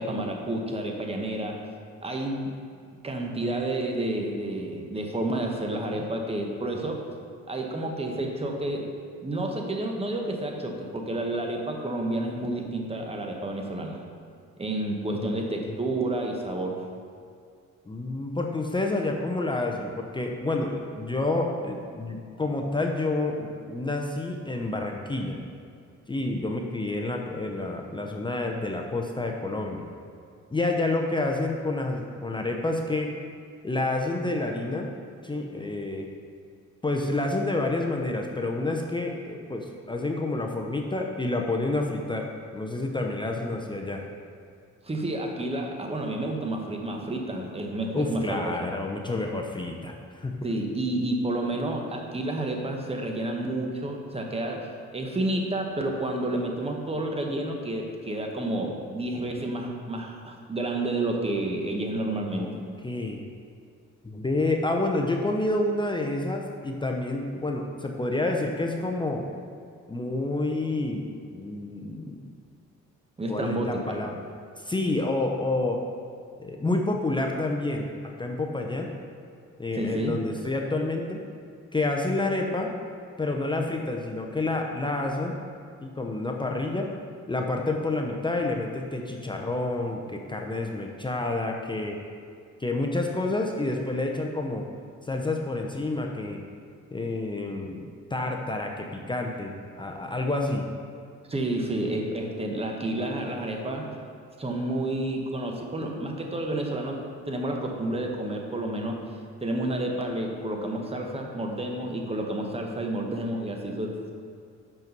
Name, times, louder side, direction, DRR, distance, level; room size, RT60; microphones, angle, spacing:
voice 1, 0.0-1.6 2.0-2.5 3.0-7.0 7.5-8.9 9.2-14.0 14.6-16.8 44.8-48.6 50.4-62.5 73.2-74.0 79.7-80.2 101.3-103.9 104.4-109.0 109.4-114.1, right 1 dB, 20° right, 2 dB, 1.1 m, -30 dB
voice 2, 15.1-15.8 17.9-25.4 26.1-29.9 30.5-33.1 33.6-34.9 35.2-36.1 36.8-42.3 42.5-44.0 47.9-50.3 62.3-62.5 62.8-63.2 64.0-69.3 69.9-72.2 73.3-74.2 74.6-75.8 76.4-78.9 79.6-81.2 81.7-82.7 83.2-85.4 85.8-86.9 87.3-92.0 92.6-94.6 95.0-96.4 96.9-100.7, left 2 dB, 15° left, 1 dB, 0.6 m, -29 dB
6.0 x 5.4 x 5.4 m, 2.3 s
cardioid pair, 90°, 30 cm